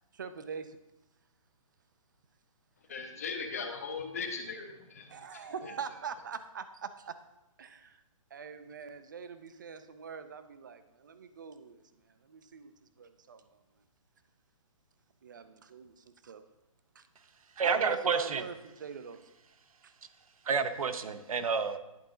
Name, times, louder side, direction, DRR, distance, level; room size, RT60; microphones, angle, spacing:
voice 1, 0.1-0.7 5.1-7.1 7.6-8.0 8.3-11.8 12.2-12.7 13.0-13.4 15.2-16.4 17.0-17.1 17.6-19.2, right 6 dB, 35° right, 11 dB, 0.4 m, -42 dB
voice 2, 2.9-5.7, left 5 dB, 25° left, 5 dB, 0.6 m, -39 dB
voice 3, 17.6-18.4 20.5-21.8, right 5 dB, 80° right, 10 dB, 0.7 m, -29 dB
10.5 x 3.9 x 3.8 m, 0.94 s
hypercardioid pair, 175°, 18 cm